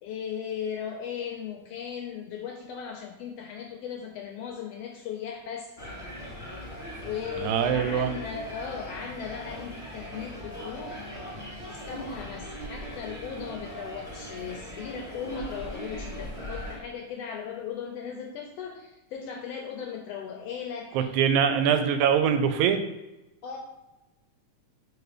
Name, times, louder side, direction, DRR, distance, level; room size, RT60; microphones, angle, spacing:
voice 1, 0.0-5.7 6.9-11.0 11.7-21.0 23.4-23.6, left 7 dB, 80° left, 2 dB, 1.5 m, -37 dB
sound 1, 5.8-16.8, equal, ahead, 1.4 m, -40 dB
voice 2, 7.4-8.1 20.9-22.8, right 8 dB, 85° right, 8 dB, 2.0 m, -23 dB
4.7 x 4.1 x 4.9 m, 1.0 s
omnidirectional pair, 3.3 m